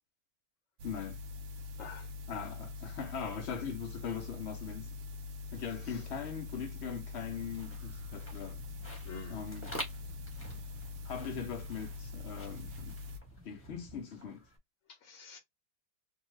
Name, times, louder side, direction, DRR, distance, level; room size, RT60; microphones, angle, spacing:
voice 1, 0.8-1.2 2.3-5.0 5.5-8.6 9.3-9.8 11.0-13.0 13.4-14.4, left 7 dB, 85° left, 0.6 m, -40 dB
sound 1, 0.8-13.2, left 4 dB, 85° right, 0.6 m, -44 dB
voice 2, 1.8-2.1 5.8-6.1 9.0-9.4 14.9-15.4, left 4 dB, 60° left, 0.9 m, -48 dB
sound 2, 7.3-14.6, equal, 10° left, 0.7 m, -48 dB
2.7 x 2.2 x 3.1 m
omnidirectional pair, 1.8 m